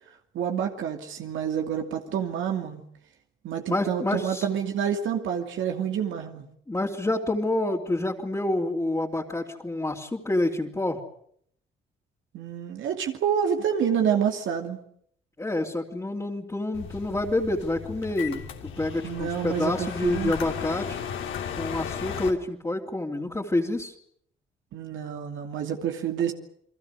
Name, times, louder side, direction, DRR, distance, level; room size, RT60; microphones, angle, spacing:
voice 1, 0.3-2.8 3.4-6.4 12.3-14.8 19.0-20.3 24.7-26.3, right 8 dB, 80° right, 3 dB, 2.7 m, -28 dB
voice 2, 3.7-4.5 6.7-11.0 15.4-21.0 21.6-23.9, left 2 dB, 15° left, -3 dB, 3.2 m, -28 dB
sound 1, 16.7-22.3, left 8 dB, 75° left, 3.2 m, -35 dB
29.5 x 21.5 x 6.6 m, 0.67 s
cardioid pair, 90°, 20 cm